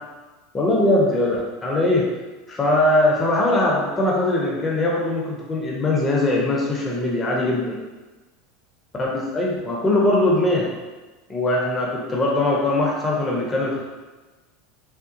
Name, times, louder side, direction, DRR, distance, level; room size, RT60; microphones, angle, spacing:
voice 1, 0.5-2.1 2.5-7.8 8.9-10.7 11.3-13.8, left 2 dB, 20° left, -3 dB, 0.6 m, -21 dB
3.7 x 2.3 x 2.5 m, 1.2 s
figure-of-eight pair, 80°, 0 cm